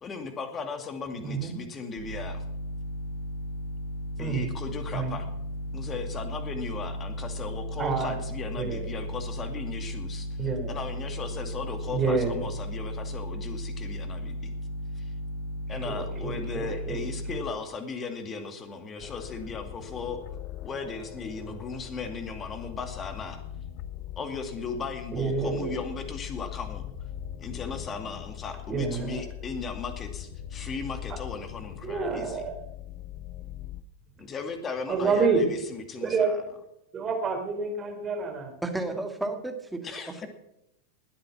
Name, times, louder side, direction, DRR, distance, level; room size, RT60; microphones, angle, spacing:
voice 1, 0.0-2.4 4.2-5.3 5.7-14.5 15.0-15.1 15.7-20.2 20.6-23.4 24.2-26.8 27.4-32.4 34.2-36.4 39.8-40.3, left 4 dB, 25° left, 7 dB, 2.3 m, -37 dB
voice 2, 1.2-1.5 4.2-4.5 4.9-5.1 7.8-8.1 8.5-8.9 10.4-10.8 11.9-12.5 15.7-17.0 25.1-25.8 28.7-29.2 31.8-32.6 34.9-35.4 36.0-36.3 36.9-38.6, right 5 dB, 25° right, 3 dB, 4.1 m, -28 dB
sound 1, 2.0-17.4, equal, 60° right, 3.2 m, -35 dB
sound 2, 19.0-33.8, left 12 dB, 40° left, 0.8 m, -41 dB
voice 3, 38.6-40.3, right 2 dB, 5° right, 5 dB, 2.1 m, -33 dB
20.0 x 8.8 x 6.1 m, 0.82 s
figure-of-eight pair, 90°, 0 cm